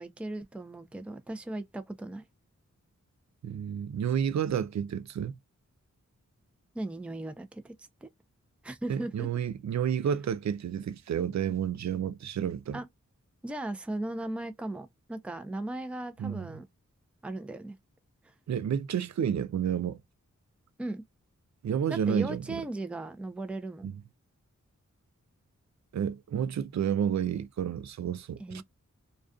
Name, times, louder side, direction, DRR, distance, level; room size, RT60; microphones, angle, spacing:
voice 1, 0.0-2.2 6.7-8.1 8.6-9.3 12.7-12.9 13.4-16.7 17.2-17.8 18.2-18.3 20.8-21.0 21.9-23.9 28.4-28.6, right 2 dB, 5° right, 0.5 m, -37 dB
voice 2, 3.4-5.4 8.9-12.8 16.2-16.5 18.5-20.0 21.6-22.6 23.8-24.0 25.9-28.6, right 8 dB, 60° right, 0.4 m, -30 dB
2.3 x 2.3 x 2.3 m
cardioid pair, 40°, 32 cm